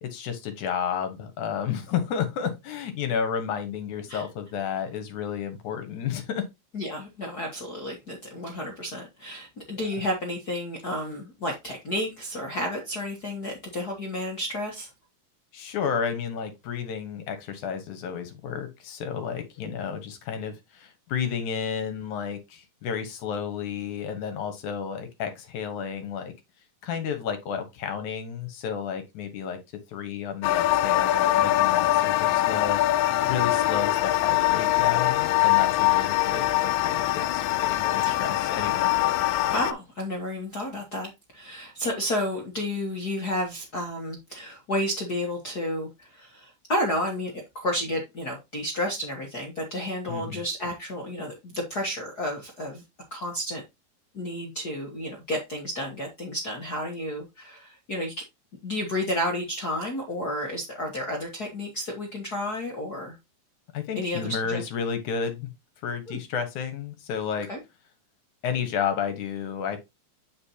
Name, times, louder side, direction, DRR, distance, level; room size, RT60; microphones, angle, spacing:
voice 1, 0.0-6.5 15.5-26.3 26.8-29.6 29.9-32.8 33.2-38.9 50.1-50.4 63.7-65.5 65.8-67.5 68.4-69.8, left 7 dB, 65° left, 2.4 m, -31 dB
voice 2, 6.7-14.9 19.6-19.7 38.0-38.1 39.5-52.8 53.1-53.6 54.1-58.1 58.6-63.2 63.9-64.6 66.1-66.2 67.5-67.6, left 1 dB, 50° left, 1.2 m, -31 dB
sound 1, 30.4-39.7, left 15 dB, 85° left, 2.2 m, -23 dB
8.7 x 5.2 x 2.8 m
omnidirectional pair, 4.0 m